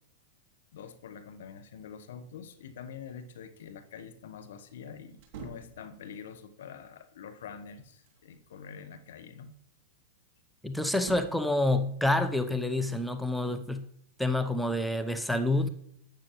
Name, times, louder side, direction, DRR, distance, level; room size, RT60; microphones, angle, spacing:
voice 1, 0.7-9.5, left 7 dB, 70° left, 9 dB, 1.2 m, -46 dB
sound 1, 5.2-5.8 7.4-8.3 10.9-11.5, right 6 dB, 50° right, 2.7 m, -46 dB
voice 2, 10.6-13.8 14.2-15.7, left 2 dB, ahead, 8 dB, 0.8 m, -28 dB
12.0 x 8.8 x 3.1 m, 0.69 s
hypercardioid pair, 100°, 0 cm